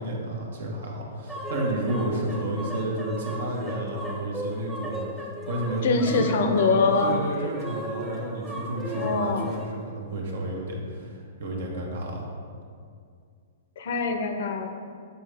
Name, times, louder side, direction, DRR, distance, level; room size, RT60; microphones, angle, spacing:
voice 1, 0.0-11.1 11.4-12.3, right 1 dB, 75° right, -1 dB, 1.2 m, -31 dB
sound 1, 1.3-9.7, right 1 dB, 5° right, 0.6 m, -36 dB
voice 2, 5.8-7.2 8.9-9.5 13.8-14.7, left 4 dB, 65° left, 6 dB, 0.6 m, -24 dB
6.9 x 4.1 x 3.4 m, 2.2 s
hypercardioid pair, 140°, 0 cm